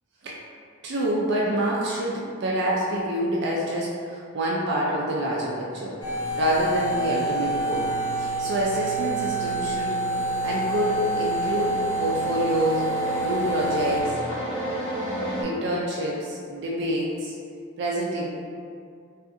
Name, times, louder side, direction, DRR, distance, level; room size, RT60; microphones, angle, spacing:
voice 1, 0.8-6.0 6.4-7.9 8.2-10.0 10.4-12.8 13.2-14.1 15.4-17.3 17.8-18.3, right 1 dB, 55° right, -4 dB, 0.4 m, -27 dB
sound 1, 6.0-14.0, right 1 dB, 15° left, 0.7 m, -27 dB
sound 2, 9.6-15.4, right 1 dB, 80° left, 1.2 m, -33 dB
3.6 x 2.4 x 2.5 m, 2.3 s
head